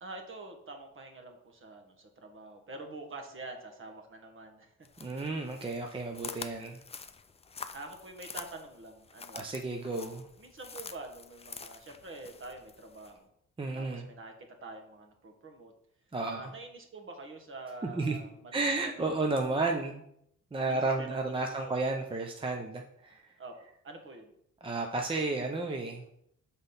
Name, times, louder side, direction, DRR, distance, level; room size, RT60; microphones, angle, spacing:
voice 1, 0.0-4.7 7.7-9.5 10.4-13.3 13.7-14.3 14.6-15.7 16.3-18.9 20.6-21.7 23.4-23.5 23.8-24.3, right 2 dB, 40° right, 3 dB, 1.5 m, -46 dB
sound 1, 4.8-13.1, left 5 dB, 20° left, 0.5 m, -47 dB
voice 2, 5.0-6.8 9.3-10.3 13.6-14.1 16.1-16.4 17.9-18.2 18.5-20.0 20.5-23.3 24.6-26.0, right 3 dB, 15° right, 3 dB, 0.7 m, -32 dB
6.2 x 4.0 x 5.5 m, 0.73 s
cardioid pair, 90°, 30 cm